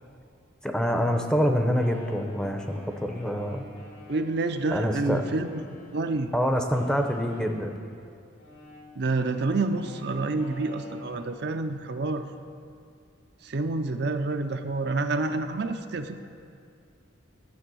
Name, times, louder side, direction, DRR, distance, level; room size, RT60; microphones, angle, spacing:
voice 1, 0.6-3.6 4.7-5.2 6.3-7.8, equal, 5° left, 4 dB, 0.7 m, -26 dB
Wind instrument woodwind instrument, 1.7-6.2 6.7-11.4, left 1 dB, 80° left, 2.7 m, -48 dB
voice 2, 4.1-5.6 5.9-6.3 9.0-12.3 13.4-16.2, right 3 dB, 55° right, 7 dB, 0.5 m, -28 dB
11.5 x 7.7 x 6.2 m, 2.4 s
head